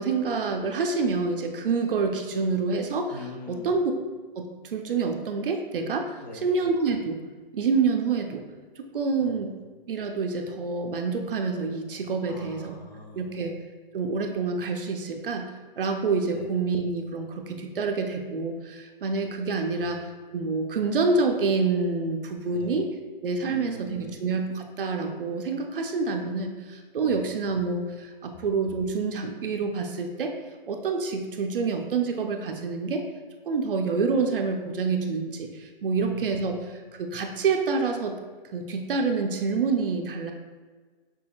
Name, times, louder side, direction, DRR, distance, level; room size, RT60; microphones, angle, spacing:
voice 1, 0.0-3.2 3.5-3.9 4.4-6.1 6.4-7.2 7.5-8.4 8.8-9.5 9.9-12.8 13.1-13.5 13.9-20.1 20.3-22.9 23.2-30.3 30.7-33.0 33.5-38.1 38.5-40.3, right 4 dB, 65° right, 4 dB, 0.6 m, -27 dB
voice 2, 3.1-3.8 6.2-6.7 9.2-9.5 12.3-13.5 16.3-16.5 19.8-20.0 22.5-22.8 23.4-24.2 27.0-27.3 36.0-36.3, left 2 dB, 45° left, 3 dB, 0.7 m, -42 dB
6.2 x 3.4 x 2.3 m, 1.4 s
hypercardioid pair, 175°, 29 cm